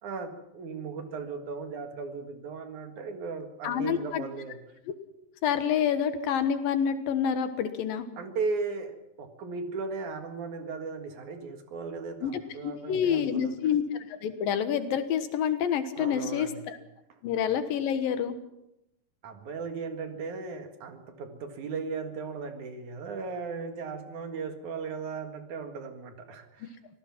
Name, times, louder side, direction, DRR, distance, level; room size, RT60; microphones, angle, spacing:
voice 1, 0.0-4.6 8.2-13.5 16.0-16.7 18.1-18.2 19.2-26.7, right 4 dB, 65° right, 6 dB, 3.1 m, -37 dB
voice 2, 3.6-4.3 5.4-8.1 12.2-16.8 17.2-18.3 26.6-26.7, left 8 dB, 85° left, 9 dB, 3.1 m, -28 dB
25.5 x 17.5 x 6.0 m, 0.88 s
omnidirectional pair, 3.9 m